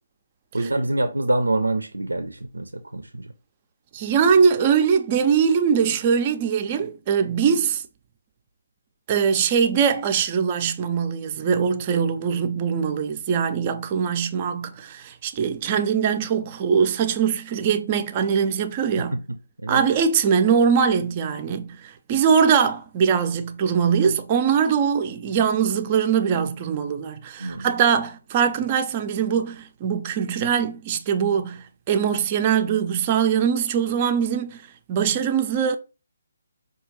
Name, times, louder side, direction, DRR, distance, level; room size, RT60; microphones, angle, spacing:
voice 1, 0.5-3.3 19.6-19.8 27.4-27.7, right 2 dB, 85° right, 0.4 m, -25 dB
voice 2, 3.9-7.8 9.1-19.2 19.7-34.6 34.9-35.8, right 7 dB, 30° right, 0.4 m, -22 dB
4.8 x 2.3 x 3.0 m
figure-of-eight pair, 145°, 0 cm